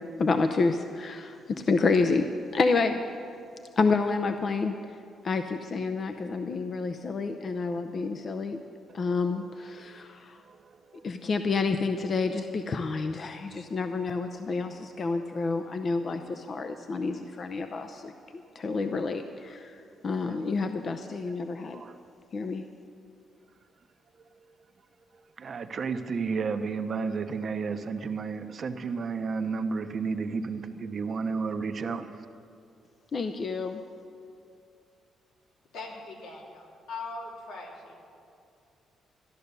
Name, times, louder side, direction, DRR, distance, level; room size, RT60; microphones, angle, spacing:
voice 1, 0.2-1.4 1.7-2.3 2.5-3.0 3.8-4.7 5.2-8.6 8.9-10.4 11.0-18.1 18.6-19.7 20.0-21.8 22.3-22.6 33.1-33.8, left 4 dB, 40° left, 0.6 m, -28 dB
voice 2, 10.4-11.3 13.6-13.7 15.2-15.4 20.3-20.5 21.2-21.3 21.7-22.0 25.4-32.2, right 5 dB, 45° right, 0.8 m, -33 dB
voice 3, 35.7-38.0, left 3 dB, 90° left, 2.9 m, -40 dB
13.5 x 11.0 x 6.8 m
cardioid pair, 110°, 0 cm